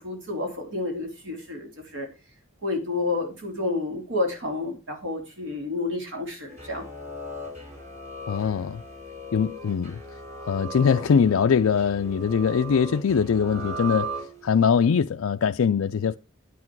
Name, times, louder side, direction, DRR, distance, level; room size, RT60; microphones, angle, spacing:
voice 1, 0.0-2.1 2.6-6.8, left 3 dB, 65° right, 3.4 m, -30 dB
sound 1, 6.5-14.7, right 2 dB, 35° right, 4.0 m, -38 dB
voice 2, 8.3-8.8 9.3-10.0 10.4-14.1 14.4-16.2, left 6 dB, 85° left, 0.4 m, -22 dB
9.7 x 8.4 x 4.6 m
head